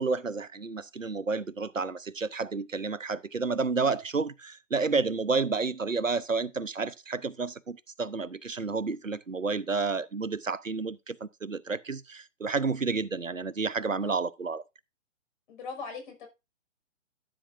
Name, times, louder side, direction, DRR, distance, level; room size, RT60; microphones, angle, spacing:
voice 1, 0.0-14.6, right 4 dB, 90° right, 0.9 m, -30 dB
voice 2, 15.5-16.3, left 4 dB, 40° left, 5.5 m, -40 dB
14.0 x 8.4 x 2.6 m
figure-of-eight pair, 130°, 38 cm